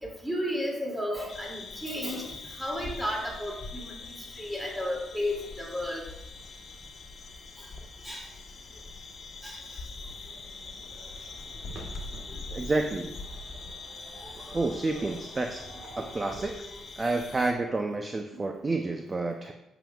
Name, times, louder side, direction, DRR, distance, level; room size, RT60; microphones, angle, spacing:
voice 1, 0.0-4.0 4.4-6.0 8.0-8.2 9.4-9.6 16.0-16.1, left 1 dB, 10° right, -2 dB, 2.5 m, -33 dB
sound 1, 1.3-17.5, left 3 dB, 55° left, 1.1 m, -43 dB
sound 2, 10.0-16.3, right 2 dB, 70° right, 1.5 m, -50 dB
voice 2, 12.5-13.2 14.5-15.6 16.0-16.5 17.0-19.5, right 2 dB, 25° right, 4 dB, 0.6 m, -29 dB
8.8 x 7.1 x 2.4 m, 0.88 s
cardioid pair, 90°, 0 cm